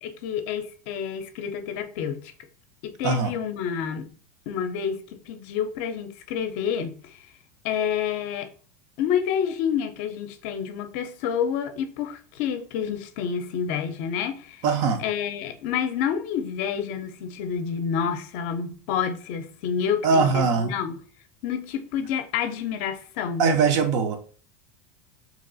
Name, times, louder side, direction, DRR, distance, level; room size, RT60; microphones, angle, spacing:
voice 1, 0.0-2.3 2.8-4.1 4.5-7.2 7.6-8.5 9.0-14.6 15.0-21.0 21.4-23.5, left 8 dB, 60° left, 0.5 m, -29 dB
voice 2, 14.6-15.0 20.0-20.7 23.4-24.2, right 5 dB, 50° right, 0.6 m, -21 dB
2.9 x 2.4 x 3.8 m
supercardioid pair, 150°, 8 cm